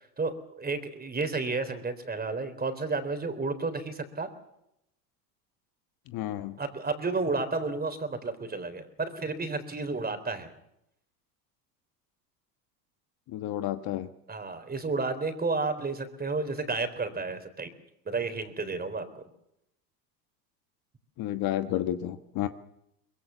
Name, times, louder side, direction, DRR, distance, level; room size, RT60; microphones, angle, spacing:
voice 1, 0.0-4.3 6.6-10.5 14.3-17.7 18.1-19.2, right 3 dB, 20° right, 9 dB, 3.8 m, -32 dB
voice 2, 6.1-6.6 13.3-14.1 21.2-22.5, left 12 dB, 45° left, 9 dB, 1.4 m, -31 dB
23.5 x 21.5 x 7.1 m, 0.80 s
hypercardioid pair, 85°, 49 cm